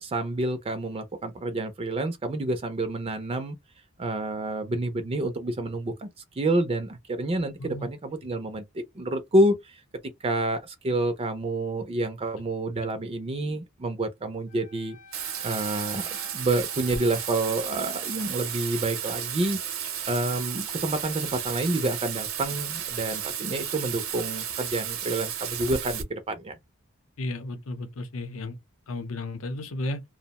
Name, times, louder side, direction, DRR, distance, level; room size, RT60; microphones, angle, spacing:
voice 1, 0.0-3.6 4.0-6.1 6.4-8.6 8.9-9.8 10.2-15.0 15.4-19.6 20.1-26.6, right 2 dB, 30° right, 0.4 m, -28 dB
Wind instrument woodwind instrument, 14.5-18.7, left 1 dB, 40° left, 0.8 m, -51 dB
Bathtub (filling or washing), 15.1-26.0, right 9 dB, 75° right, 0.7 m, -33 dB
voice 2, 27.2-28.6 28.9-30.0, left 2 dB, 75° left, 0.7 m, -33 dB
2.5 x 2.0 x 2.8 m
head